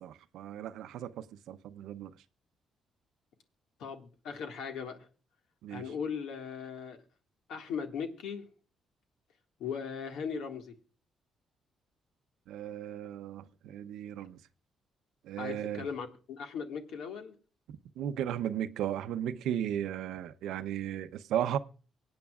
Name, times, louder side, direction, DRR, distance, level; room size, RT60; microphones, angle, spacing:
voice 1, 0.0-2.1 5.6-5.8 12.5-14.4 15.2-15.9 18.0-21.6, right 10 dB, 85° right, 0.7 m, -35 dB
voice 2, 3.8-5.1 5.7-7.0 7.5-8.5 9.6-10.7 15.4-17.3, left 6 dB, 85° left, 1.9 m, -38 dB
24.0 x 8.7 x 2.4 m
cardioid pair, 90°, 0 cm